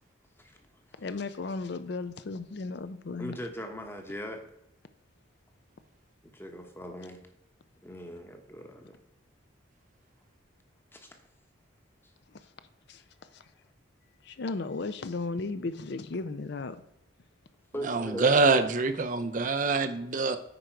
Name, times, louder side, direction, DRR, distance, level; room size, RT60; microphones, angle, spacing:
voice 1, 1.0-3.4 12.3-12.4 12.9-13.0 13.3-13.4 14.2-16.8, left 3 dB, 55° left, 12 dB, 0.5 m, -35 dB
voice 2, 3.2-4.4 6.3-7.2 7.8-9.0 10.9-11.2 17.7-18.6, equal, 10° left, 5 dB, 1.0 m, -40 dB
voice 3, 17.8-20.4, right 3 dB, 40° right, 10 dB, 0.5 m, -25 dB
9.0 x 5.0 x 4.5 m, 0.86 s
head